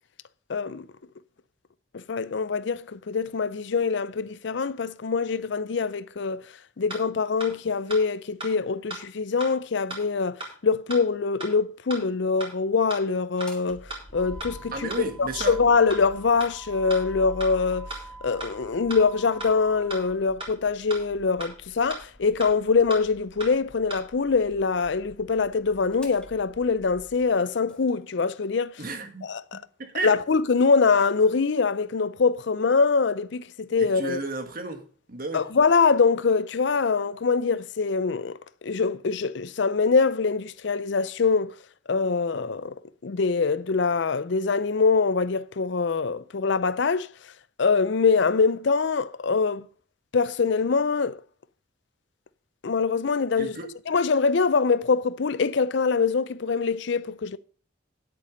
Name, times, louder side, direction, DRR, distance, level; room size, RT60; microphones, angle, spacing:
voice 1, 0.5-0.9 1.9-6.4 6.8-10.4 10.6-13.8 14.1-17.9 18.2-28.7 29.2-29.6 30.0-34.2 35.3-38.4 38.6-41.5 41.9-42.7 43.0-47.1 47.6-49.7 50.1-51.2 52.6-53.6 53.9-57.4, left 4 dB, 60° left, 0.5 m, -24 dB
sound 1, 6.9-7.0 7.4-7.5 7.9-8.0 8.4-8.5 8.9-9.0 9.4-9.5 9.9-10.0 10.4-10.5 10.9-11.0 11.4-11.5 11.9-12.0 12.4-12.5 12.9-13.0 13.4-13.5 13.9-14.0 14.4-14.5 14.9-15.0 15.4-15.5 15.9-16.0 16.4-16.5 16.9-17.0 17.4-17.5 17.9-18.0 18.4-18.5 18.9-19.0 19.4-19.5 19.9-20.0 20.4-20.5 20.9-21.0 21.4-21.5 21.9-22.0 22.4-22.5 22.9-23.0 23.4-23.5 23.9-24.0, right 2 dB, 25° right, 3.9 m, -35 dB
Motor vehicle (road), 13.2-27.9, right 1 dB, 5° left, 1.6 m, -45 dB
voice 2, 14.7-15.6 28.8-29.3 29.8-30.1 33.8-34.8 35.1-35.4 53.4-53.7, right 3 dB, 45° right, 1.6 m, -32 dB
10.0 x 8.5 x 5.1 m
head